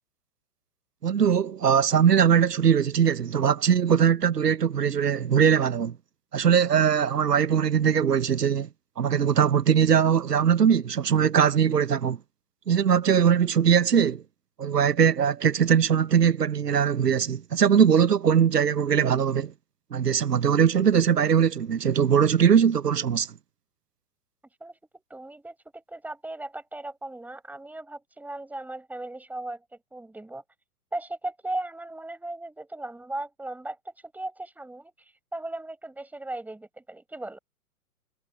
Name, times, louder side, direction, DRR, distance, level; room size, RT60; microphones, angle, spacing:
voice 1, 1.0-6.0 6.3-8.7 9.0-12.2 12.7-14.2 14.6-19.5 19.9-23.3, right 8 dB, 90° right, 0.7 m, -21 dB
voice 2, 24.6-29.6 29.9-30.4 30.9-37.4, right 2 dB, 5° right, 6.2 m, -37 dB
figure-of-eight pair, 120°, 46 cm